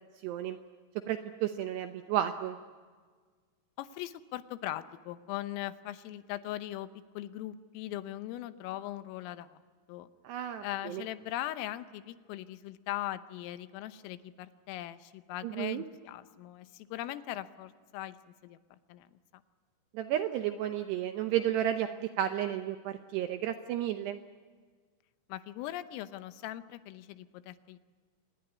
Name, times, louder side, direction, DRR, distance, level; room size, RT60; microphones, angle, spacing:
voice 1, 0.2-0.6 1.1-2.6 10.2-11.0 15.4-15.8 19.9-24.2, right 11 dB, 80° right, 7 dB, 2.5 m, -32 dB
voice 2, 3.8-6.9 7.2-9.6 9.9-10.1 10.6-18.2 18.4-19.1 19.3-19.4 25.3-27.8, left 14 dB, 85° left, 12 dB, 3.6 m, -40 dB
25.5 x 20.0 x 9.9 m, 1.5 s
omnidirectional pair, 5.8 m